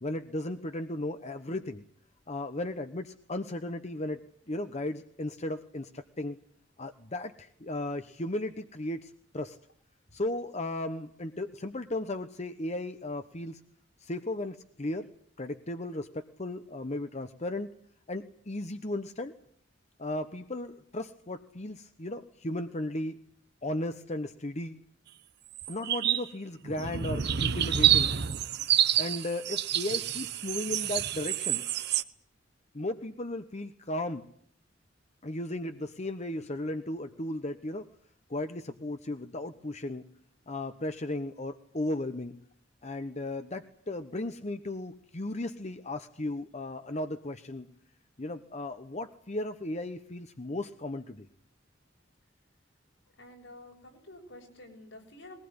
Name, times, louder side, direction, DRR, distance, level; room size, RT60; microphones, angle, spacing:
voice 1, 0.0-1.8 2.3-6.4 6.8-9.6 10.1-13.6 14.0-15.1 15.4-17.7 18.1-19.3 20.0-23.2 23.6-24.8 25.7-28.1 29.0-31.7 32.7-34.2 35.2-37.9 38.3-40.0 40.5-42.3 42.8-47.7 48.2-51.3, left 1 dB, 35° left, 9 dB, 1.1 m, -35 dB
sound 1, 25.6-26.3 26.6-32.0, right 10 dB, 60° right, 1.0 m, -28 dB
voice 2, 53.2-55.3, left 1 dB, 80° left, 2 dB, 7.8 m, -49 dB
21.5 x 19.5 x 9.8 m, 0.65 s
head